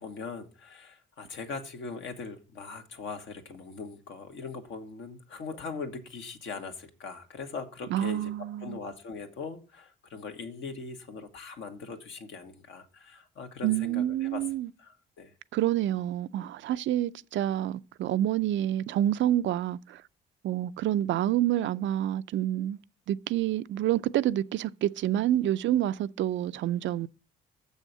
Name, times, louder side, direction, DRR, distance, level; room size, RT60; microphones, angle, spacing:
voice 1, 0.0-14.5 14.8-15.3, left 4 dB, 70° left, 1.8 m, -41 dB
voice 2, 7.9-8.8 13.6-14.7 15.5-20.0 20.4-22.8 23.1-27.1, right 12 dB, 70° right, 0.5 m, -28 dB
7.1 x 6.4 x 7.6 m
cardioid pair, 90°, 20 cm